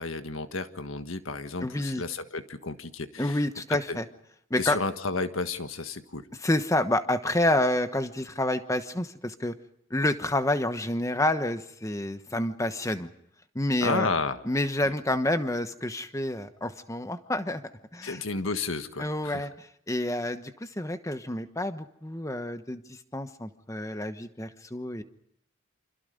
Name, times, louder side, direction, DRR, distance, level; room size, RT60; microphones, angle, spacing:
voice 1, 0.0-3.4 3.7-4.0 4.6-6.3 13.8-14.4 14.8-15.2 18.0-19.5, left 3 dB, 75° left, 9 dB, 1.5 m, -32 dB
voice 2, 1.6-2.0 3.2-4.1 4.5-4.8 6.4-9.5 9.9-13.1 13.5-14.1 14.4-17.6 17.9-18.2 19.0-25.0, left 1 dB, 15° left, 10 dB, 1.1 m, -28 dB
28.5 x 26.0 x 5.2 m, 0.72 s
head